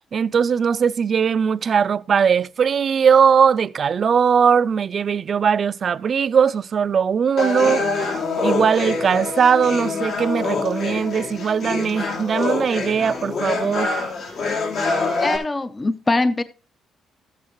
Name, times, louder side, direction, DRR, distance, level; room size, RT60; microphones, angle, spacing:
voice 1, 0.1-7.8 8.4-14.0, right 7 dB, 50° right, 0.4 m, -19 dB
sound 1, 7.4-15.4, left 3 dB, 70° left, 2.6 m, -25 dB
voice 2, 15.2-16.4, left 2 dB, 25° left, 0.5 m, -22 dB
13.5 x 8.5 x 3.0 m
cardioid pair, 90°, 0 cm